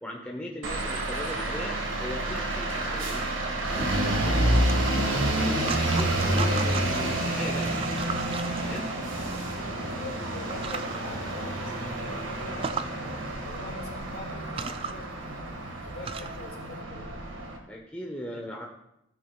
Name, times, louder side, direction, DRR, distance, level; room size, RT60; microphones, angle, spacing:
voice 1, 0.0-3.3 3.7-3.9 4.2-4.6 4.9-7.8 8.6-8.9 17.7-18.7, left 1 dB, 5° left, -2 dB, 1.0 m, -38 dB
sound 1, 0.6-17.6, right 1 dB, 80° right, 1.7 m, -29 dB
splashes splats, 4.5-7.1 7.5-9.4 10.1-10.2 10.5-11.0 11.5-11.6 11.9-12.0 12.4-12.9 13.9-14.0 14.4-16.5, right 5 dB, 30° right, 0.3 m, -37 dB
voice 2, 9.7-15.5 15.8-17.3, left 1 dB, 50° left, 0 dB, 2.3 m, -44 dB
15.5 x 9.7 x 2.3 m, 0.81 s
head